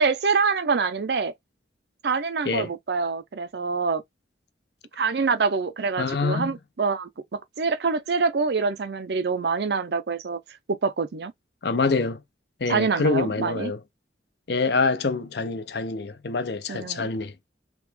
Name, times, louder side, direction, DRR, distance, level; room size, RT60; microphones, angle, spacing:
voice 1, 0.0-1.3 2.0-4.0 5.0-10.4 10.7-11.3 12.7-13.7 16.7-17.1, right 4 dB, 60° right, 0.5 m, -25 dB
voice 2, 6.0-6.5 11.6-12.2 12.6-13.8 14.5-17.3, left 4 dB, 60° left, 0.6 m, -25 dB
3.3 x 2.9 x 3.4 m
head